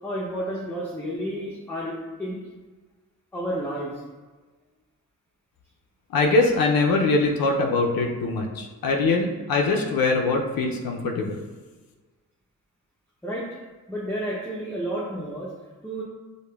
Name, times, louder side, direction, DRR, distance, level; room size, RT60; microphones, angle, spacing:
voice 1, 0.0-1.9 2.2-2.4 3.3-4.0 13.2-13.5 13.9-15.5 15.8-16.0, equal, 5° left, -5 dB, 0.5 m, -31 dB
voice 2, 6.1-11.4, left 3 dB, 80° left, 1 dB, 0.5 m, -22 dB
4.9 x 2.1 x 2.2 m, 1.3 s
cardioid pair, 65°, 34 cm